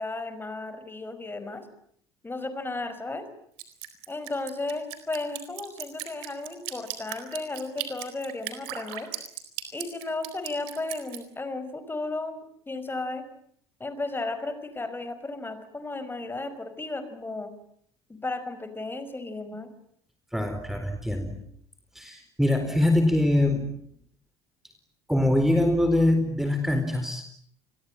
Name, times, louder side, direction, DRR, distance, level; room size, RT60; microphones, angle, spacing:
voice 1, 0.0-1.7 2.2-3.3 4.1-9.1 9.7-13.3 13.8-17.5 18.1-19.7, left 2 dB, 15° left, 11 dB, 5.3 m, -34 dB
Drip, 3.6-11.2, right 13 dB, 65° right, 4.3 m, -37 dB
voice 2, 20.3-21.3 21.9-23.8 25.1-27.2, left 1 dB, ahead, 7 dB, 4.2 m, -23 dB
30.0 x 22.5 x 9.0 m, 0.67 s
figure-of-eight pair, 65°, 14 cm